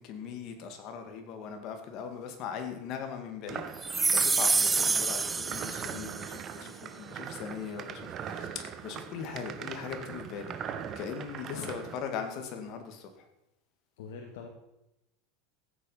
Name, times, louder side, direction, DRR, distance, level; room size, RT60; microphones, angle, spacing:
voice 1, 0.0-10.6 11.0-13.3, left 6 dB, 45° left, 6 dB, 2.3 m, -40 dB
sound 1, 3.5-12.0, right 8 dB, 35° right, 1.2 m, -41 dB
sound 2, 3.8-6.4, right 4 dB, 15° right, 0.4 m, -27 dB
voice 2, 14.0-14.5, left 5 dB, 85° left, 3 dB, 1.8 m, -43 dB
15.0 x 8.2 x 5.8 m, 0.88 s
supercardioid pair, 145°, 0 cm